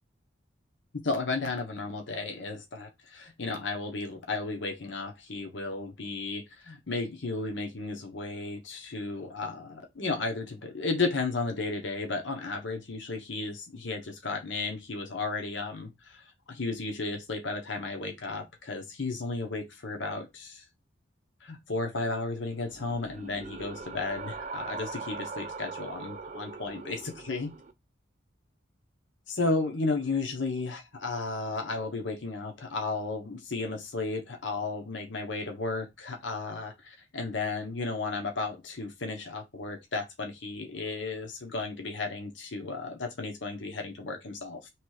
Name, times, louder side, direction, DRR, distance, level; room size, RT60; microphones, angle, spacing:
voice 1, 1.0-20.6 21.4-27.6 29.3-44.6, left 3 dB, 70° left, 1.0 m, -34 dB
sound 1, 22.6-27.7, right 4 dB, 35° right, 0.4 m, -41 dB
3.3 x 3.0 x 4.7 m
head